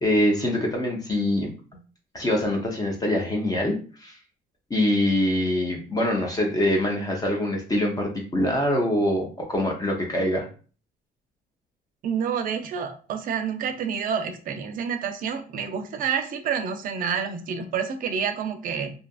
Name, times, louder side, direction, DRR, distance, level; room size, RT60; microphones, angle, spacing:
voice 1, 0.0-1.5 2.1-4.1 4.7-10.5, left 1 dB, 20° left, 0 dB, 0.6 m, -24 dB
voice 2, 12.0-18.9, right 7 dB, 55° right, 8 dB, 0.5 m, -28 dB
2.7 x 2.4 x 2.3 m, 0.38 s
cardioid pair, 110°, 17 cm